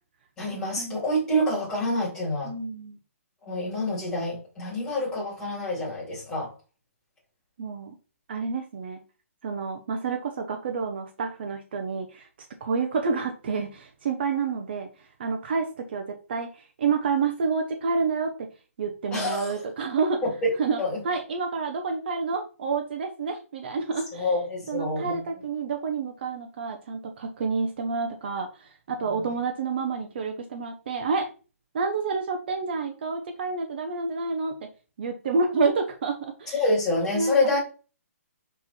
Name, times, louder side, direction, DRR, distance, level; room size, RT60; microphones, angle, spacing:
voice 1, 0.4-2.5 3.5-6.5 19.1-19.6 20.2-20.5 20.8-21.0 24.1-25.2 29.1-29.3 36.5-37.6, left 1 dB, 10° left, -6 dB, 2.9 m, -27 dB
voice 2, 2.4-3.0 7.6-7.9 8.3-9.0 9.4-12.3 12.6-14.9 15.2-18.5 18.8-20.2 20.6-24.3 24.7-31.3 31.7-34.7 35.0-36.6 37.1-37.5, right 4 dB, 45° right, 5 dB, 1.0 m, -29 dB
5.9 x 4.4 x 4.3 m, 0.34 s
hypercardioid pair, 170°, 8 cm